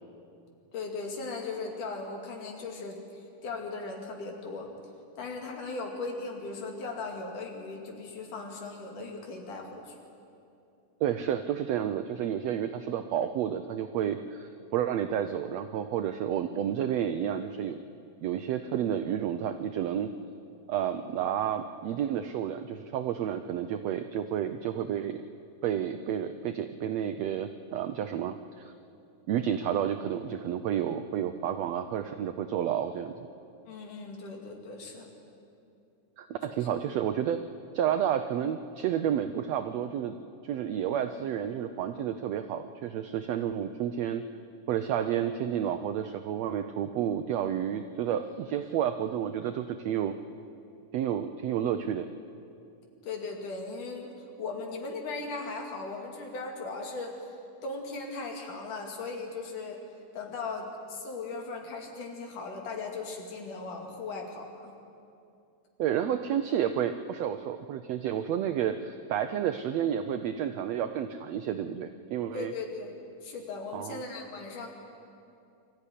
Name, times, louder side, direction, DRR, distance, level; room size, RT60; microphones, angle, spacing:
voice 1, 0.7-4.7 5.2-10.0 33.7-35.1 36.5-36.7 53.0-57.3 57.6-59.8 60.1-64.7 72.3-73.0 73.2-74.7, left 3 dB, 70° left, 2 dB, 3.9 m, -38 dB
voice 2, 11.0-17.8 18.2-20.1 20.7-25.2 25.6-28.7 29.3-33.1 36.2-37.4 37.7-40.1 40.4-44.2 44.7-50.1 50.9-52.1 65.8-72.5 73.7-74.0, right 9 dB, 80° right, 9 dB, 1.5 m, -30 dB
24.0 x 13.5 x 10.0 m, 2.6 s
omnidirectional pair, 3.8 m